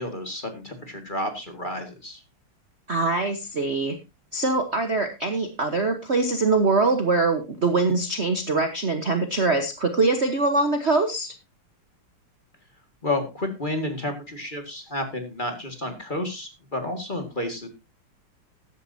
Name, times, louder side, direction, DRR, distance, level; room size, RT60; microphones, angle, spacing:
voice 1, 0.0-2.2 13.0-17.7, left 1 dB, 25° left, 5 dB, 1.9 m, -31 dB
voice 2, 2.9-4.0 4.3-11.3, right 3 dB, 40° right, 6 dB, 1.2 m, -23 dB
14.5 x 11.0 x 2.8 m, 0.25 s
omnidirectional pair, 2.4 m